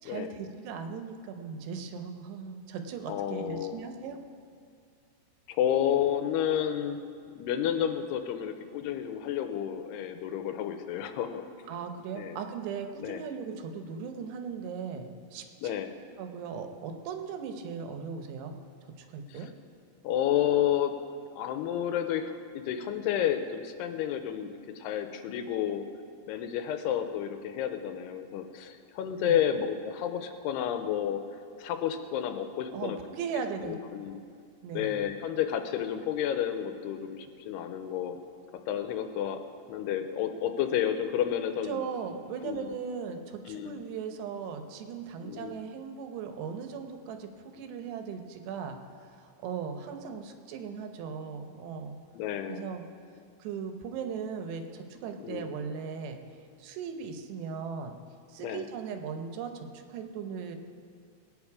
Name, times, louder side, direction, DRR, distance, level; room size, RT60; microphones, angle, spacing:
voice 1, 0.0-4.2 11.7-15.7 16.2-18.6 18.8-19.5 29.2-29.4 32.7-33.8 34.6-34.9 41.6-52.0 52.5-52.9 53.4-56.2 56.6-57.9 58.3-60.6, right 6 dB, 80° right, 6 dB, 3.0 m, -38 dB
voice 2, 3.1-3.8 5.5-7.0 7.3-11.4 12.2-12.4 13.0-13.2 15.6-15.9 19.3-19.5 20.0-20.9 21.4-25.8 26.3-31.2 31.6-33.0 33.6-34.2 34.7-38.2 38.7-39.4 39.7-41.8 42.4-42.7 43.5-43.8 45.2-45.6 52.1-52.7 55.2-55.5 58.4-58.7, left 10 dB, 85° left, 8 dB, 2.6 m, -31 dB
20.0 x 9.1 x 4.8 m, 2.3 s
omnidirectional pair, 4.9 m